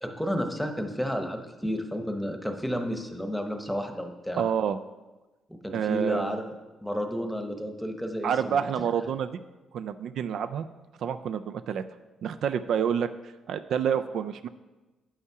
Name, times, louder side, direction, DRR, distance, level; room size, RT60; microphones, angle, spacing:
voice 1, 0.0-4.4 5.6-6.5 6.8-8.6, equal, ahead, 5 dB, 0.9 m, -31 dB
voice 2, 4.4-4.8 5.7-6.4 8.2-9.3 9.7-10.7 11.0-11.8 12.2-13.1 13.5-14.5, right 8 dB, 70° right, 11 dB, 0.3 m, -28 dB
8.5 x 5.6 x 4.7 m, 1.1 s
cardioid pair, 90°, 0 cm